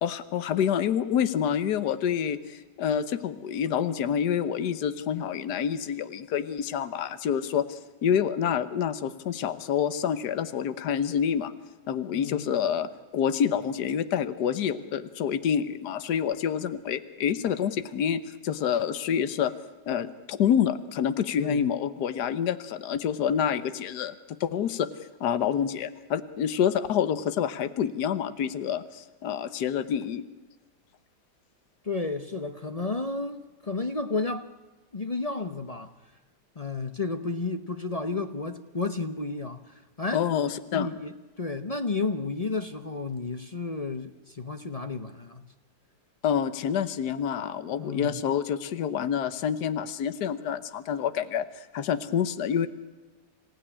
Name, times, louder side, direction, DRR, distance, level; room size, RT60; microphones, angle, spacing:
voice 1, 0.0-11.5 11.9-19.5 19.9-24.1 24.4-24.9 25.2-30.2 40.1-40.9 46.2-51.5 51.7-52.7, left 8 dB, 70° left, 13 dB, 1.5 m, -27 dB
voice 2, 12.1-12.5 21.4-21.7 31.8-34.5 34.9-35.9 36.6-40.2 40.7-41.1 41.4-45.4 47.7-48.2, left 3 dB, 30° left, 8 dB, 0.7 m, -32 dB
27.0 x 16.0 x 10.0 m, 1.2 s
omnidirectional pair, 1.8 m